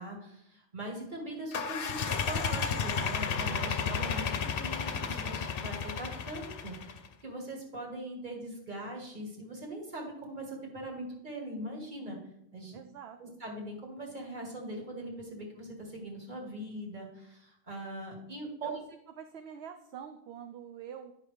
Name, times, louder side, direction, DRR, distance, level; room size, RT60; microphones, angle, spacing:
voice 1, 0.0-12.2 12.5-12.8 13.2-18.8, right 1 dB, 45° right, -1 dB, 1.9 m, -41 dB
sound 1, 1.5-7.1, left 6 dB, 65° left, 0.8 m, -33 dB
voice 2, 12.7-13.4 18.6-18.7 19.2-21.1, right 8 dB, 75° right, 7 dB, 0.8 m, -46 dB
9.9 x 5.5 x 3.3 m, 0.76 s
omnidirectional pair, 1.1 m